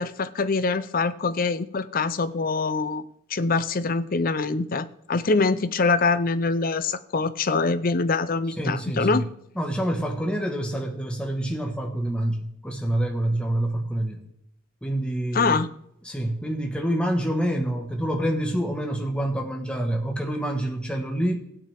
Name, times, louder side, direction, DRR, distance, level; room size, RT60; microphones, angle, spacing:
voice 1, 0.0-3.0 3.3-9.2 15.3-15.7, left 4 dB, 40° left, 13 dB, 0.6 m, -24 dB
voice 2, 8.6-9.2 9.5-14.2 14.8-15.6 16.0-21.4, right 1 dB, 5° left, 2 dB, 1.4 m, -27 dB
16.5 x 9.1 x 3.5 m, 0.73 s
head